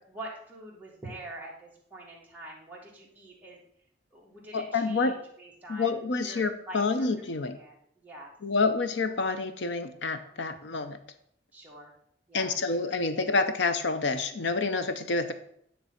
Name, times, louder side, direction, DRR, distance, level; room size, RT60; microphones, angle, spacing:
voice 1, 0.1-3.6 4.1-5.9 6.2-7.1 7.5-8.3 10.3-10.8 11.5-11.9 12.3-12.5, right 1 dB, 10° right, -4 dB, 1.9 m, -45 dB
voice 2, 4.5-5.2 5.7-7.6 8.4-11.0 12.3-15.3, left 3 dB, 85° left, 9 dB, 0.7 m, -28 dB
9.5 x 3.4 x 5.8 m, 0.68 s
head